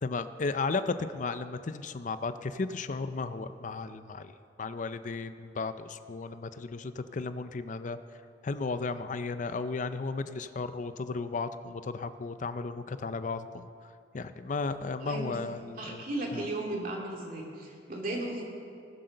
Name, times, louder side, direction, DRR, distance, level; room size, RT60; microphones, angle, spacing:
voice 1, 0.0-4.3 4.6-8.0 8.4-13.7 14.1-16.0 16.3-16.5, left 4 dB, 45° left, 11 dB, 0.5 m, -34 dB
voice 2, 15.0-15.4 15.8-18.5, right 1 dB, 50° right, 0 dB, 2.6 m, -35 dB
19.5 x 7.8 x 6.5 m, 2.4 s
head